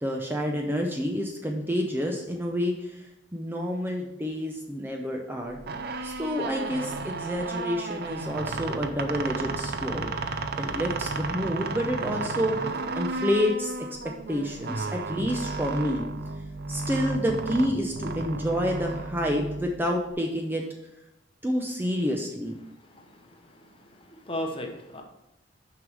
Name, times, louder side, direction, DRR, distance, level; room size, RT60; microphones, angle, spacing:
voice 1, 0.0-3.1 3.3-5.6 6.0-10.1 10.5-12.6 13.0-13.8 14.3-16.1 16.7-20.6 21.4-22.5, equal, 10° right, 1 dB, 0.6 m, -28 dB
sound 1, 5.6-20.1, right 3 dB, 55° right, 0.5 m, -33 dB
voice 2, 22.9-23.4 24.1-25.0, left 1 dB, 30° left, 3 dB, 1.0 m, -35 dB
6.5 x 5.3 x 4.8 m, 0.87 s
head